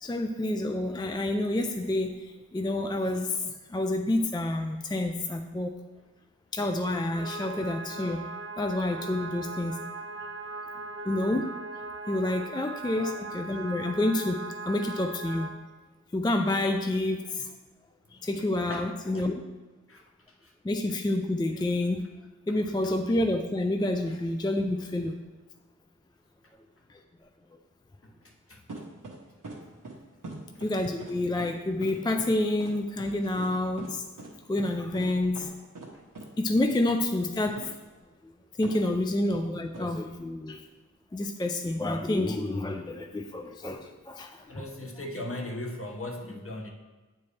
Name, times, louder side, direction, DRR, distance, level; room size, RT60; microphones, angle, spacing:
voice 1, 0.0-2.1 2.5-5.8 6.5-8.3 8.6-9.8 11.1-11.5 12.1-15.5 16.1-17.5 18.2-19.3 20.6-22.0 22.5-25.1 30.6-34.0 34.5-35.5 36.4-37.5 38.6-40.6 41.1-44.7, left 1 dB, 15° left, 5 dB, 0.3 m, -28 dB
sound 1, 7.1-15.5, right 3 dB, 40° right, 0.7 m, -39 dB
voice 2, 18.7-19.3 19.9-20.0 20.4-20.5 22.8-22.9 28.5-28.6 29.4-29.6 30.2-30.5 44.5-46.7, left 1 dB, 45° left, 1 dB, 0.9 m, -38 dB
sound 2, 28.7-29.2 29.4-29.6 29.8-30.0 30.2-30.7 31.0-31.1 31.4-31.5 31.8-31.9 32.2-32.3 32.6-32.7 33.0-33.1 33.4-33.5 33.8-33.9 34.2-34.3 34.6-34.7 34.9-35.1 35.3-35.5 35.7-35.9 36.1-36.3 37.6-37.7 38.6-38.8 39.7-39.8, right 2 dB, 85° right, 1.0 m, -41 dB
8.3 x 4.4 x 3.2 m, 1.2 s
wide cardioid pair, 55°, 31 cm